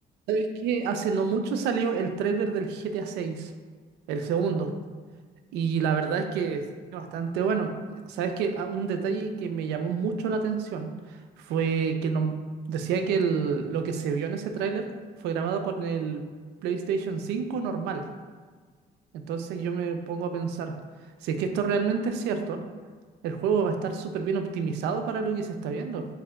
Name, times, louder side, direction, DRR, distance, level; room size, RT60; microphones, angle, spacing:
voice 1, 0.3-3.5 4.1-4.7 5.5-6.6 6.9-12.4 12.7-14.9 15.2-16.2 16.6-18.1 19.1-20.8 21.2-22.6 23.2-26.1, right 5 dB, 85° right, 6 dB, 0.4 m, -28 dB
3.3 x 2.8 x 3.4 m, 1.5 s
cardioid pair, 110°, 17 cm